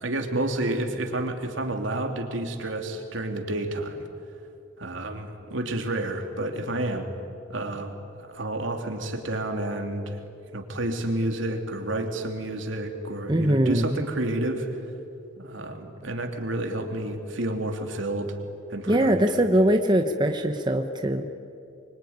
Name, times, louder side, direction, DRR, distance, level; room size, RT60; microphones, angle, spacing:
voice 1, 0.0-4.0 4.8-7.1 7.5-10.2 10.5-14.7 15.4-18.4 18.7-19.5, right 1 dB, 80° right, 4 dB, 2.9 m, -30 dB
voice 2, 13.3-14.0 18.9-21.3, right 1 dB, 25° right, 5 dB, 1.0 m, -22 dB
24.5 x 24.0 x 9.6 m, 2.6 s
head